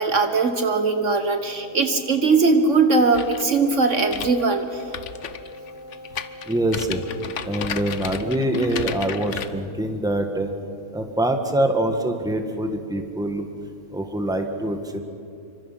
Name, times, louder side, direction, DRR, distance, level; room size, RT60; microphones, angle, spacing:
voice 1, 0.0-4.8, right 4 dB, 55° right, 7 dB, 1.5 m, -20 dB
Wind instrument woodwind instrument, 1.4-9.6, left 1 dB, 75° right, 3.4 m, -43 dB
sound 1, 3.1-9.5, left 8 dB, 55° left, 1.2 m, -34 dB
voice 2, 6.5-7.0 7.4-10.5 10.9-13.5 13.9-15.0, right 1 dB, 5° right, 5 dB, 1.7 m, -24 dB
27.5 x 24.5 x 6.0 m, 2.5 s
omnidirectional pair, 1.6 m